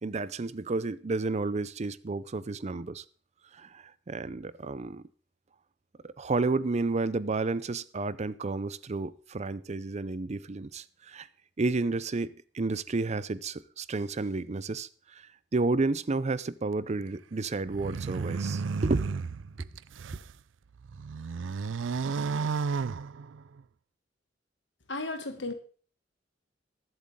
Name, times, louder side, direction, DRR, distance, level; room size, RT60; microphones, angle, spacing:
voice 1, 0.0-3.0 3.5-5.0 6.0-11.3 11.6-19.1 19.6-19.7, right 3 dB, 35° right, 0.5 m, -31 dB
sound 1, 17.7-20.3 20.8-23.6, right 5 dB, 90° right, 0.4 m, -33 dB
voice 2, 24.9-25.5, left 2 dB, 70° left, 2.0 m, -34 dB
21.0 x 7.9 x 3.7 m
head